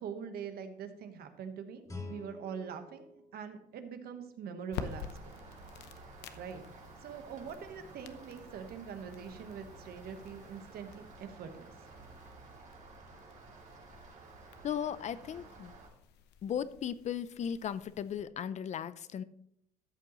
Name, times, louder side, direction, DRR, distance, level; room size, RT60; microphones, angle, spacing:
voice 1, 0.0-5.3 6.0-11.7, right 7 dB, 65° right, 8 dB, 1.2 m, -44 dB
Guitar, 1.8-4.6, left 2 dB, 20° left, 2.5 m, -48 dB
sound 1, 4.7-18.2, left 7 dB, 85° left, 0.8 m, -50 dB
Rain, 4.7-15.9, right 3 dB, 45° right, 3.0 m, -53 dB
voice 2, 14.6-15.7 16.4-19.2, left 8 dB, 45° left, 16 dB, 0.5 m, -36 dB
13.5 x 7.7 x 3.0 m, 0.76 s
cardioid pair, 110°, 17 cm